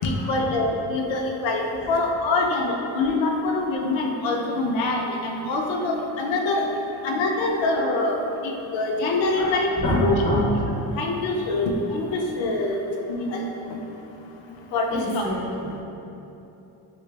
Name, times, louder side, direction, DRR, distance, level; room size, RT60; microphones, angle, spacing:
voice 1, 0.0-6.7 7.0-9.7 10.0-10.2 10.9-12.8 13.1-13.5 14.7-15.3, left 2 dB, 65° left, 1 dB, 0.5 m, -24 dB
voice 2, 9.4-10.5 14.9-15.8, equal, 15° left, -7 dB, 0.5 m, -26 dB
3.2 x 2.3 x 3.2 m, 3.0 s
cardioid pair, 135°, 49 cm